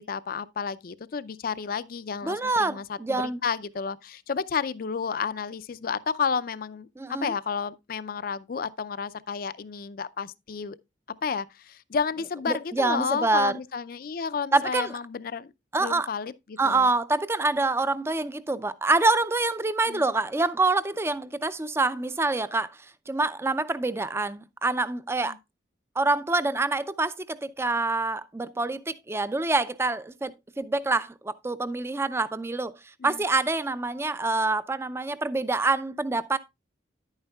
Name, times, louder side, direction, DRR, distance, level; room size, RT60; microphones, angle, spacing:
voice 1, 0.0-10.8 11.2-15.5 15.8-16.9 19.9-20.0 25.2-25.4 33.0-33.2, left 6 dB, 50° left, 0.4 m, -31 dB
voice 2, 2.2-3.4 7.0-7.3 12.5-13.5 14.5-14.9 15.7-16.1 16.6-22.7 23.1-25.4 26.0-32.7 33.0-36.4, right 3 dB, 15° right, 0.4 m, -26 dB
10.5 x 8.9 x 2.3 m
head